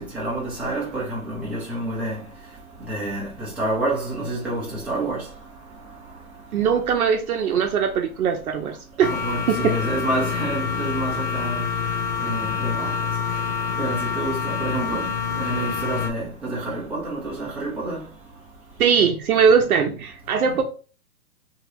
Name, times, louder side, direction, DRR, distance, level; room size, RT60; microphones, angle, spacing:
voice 1, 0.0-2.2 2.9-5.2 9.1-11.7 12.2-12.9 13.8-15.1 15.3-18.0 20.5-20.6, right 2 dB, 5° right, 0.5 m, -28 dB
voice 2, 6.5-9.1 18.8-20.6, right 6 dB, 75° right, 0.7 m, -20 dB
sound 1, 9.0-16.1, left 6 dB, 90° left, 0.7 m, -27 dB
2.9 x 2.8 x 2.8 m
hypercardioid pair, 140°, 43 cm